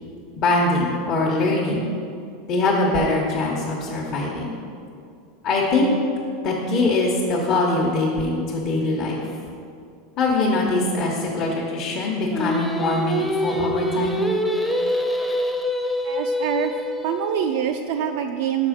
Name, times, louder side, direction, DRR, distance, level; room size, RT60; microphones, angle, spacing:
voice 1, 0.4-1.9 2.5-4.5 5.4-5.9 6.4-9.3 10.2-14.2, left 2 dB, 45° left, -4 dB, 0.9 m, -22 dB
Singing, 12.3-17.4, left 1 dB, 5° left, 0.6 m, -25 dB
voice 2, 16.0-16.7 17.0-18.7, right 9 dB, 70° right, 4 dB, 0.3 m, -25 dB
6.0 x 5.0 x 5.0 m, 2.4 s
supercardioid pair, 120°, 0 cm